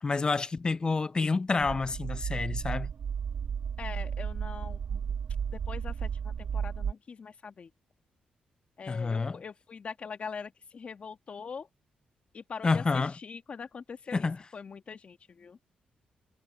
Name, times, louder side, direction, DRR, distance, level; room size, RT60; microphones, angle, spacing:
voice 1, 0.0-2.9 8.9-9.4 12.6-13.1 14.1-14.4, left 4 dB, 30° left, 0.6 m, -28 dB
sound 1, 1.6-6.9, right 7 dB, 65° right, 2.2 m, -34 dB
voice 2, 3.8-5.0 5.5-7.7 8.8-11.7 12.3-14.3 14.5-15.6, left 5 dB, 50° left, 2.1 m, -42 dB
cardioid pair, 90°, 3 cm